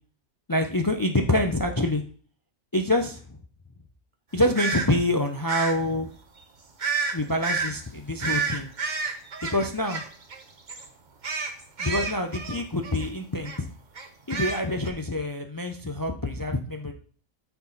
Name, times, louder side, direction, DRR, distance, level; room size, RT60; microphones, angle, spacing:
voice 1, 0.5-2.0 2.7-3.4 4.3-6.1 7.1-8.7 9.5-10.0 11.8-13.7 14.3-16.9, left 1 dB, 35° left, 5 dB, 0.3 m, -26 dB
sound 1, 4.5-4.9 5.5-5.8 6.8-7.1 7.4-7.7 8.2-10.4 10.7-10.9 11.2-13.1 13.4-13.6 13.9-14.9, right 5 dB, 35° right, 1.0 m, -29 dB
12.5 x 4.7 x 4.1 m, 0.43 s
omnidirectional pair, 1.5 m